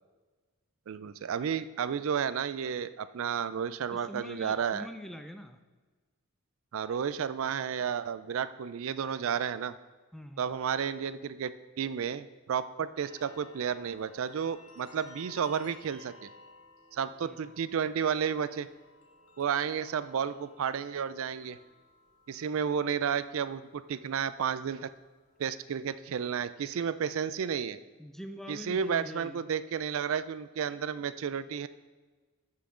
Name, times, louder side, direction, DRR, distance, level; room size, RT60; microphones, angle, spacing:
voice 1, 0.9-4.9 6.7-9.7 10.4-11.5 11.8-16.3 16.9-18.7 19.4-21.6 22.3-24.9 25.4-27.8 28.5-31.7, right 7 dB, 65° right, 14 dB, 0.4 m, -32 dB
voice 2, 3.9-5.6 10.1-10.5 17.2-17.4 28.0-29.4, equal, ahead, 7 dB, 0.4 m, -44 dB
sound 1, 13.0-26.3, left 2 dB, 80° left, 1.6 m, -58 dB
14.5 x 5.7 x 3.8 m, 1.3 s
head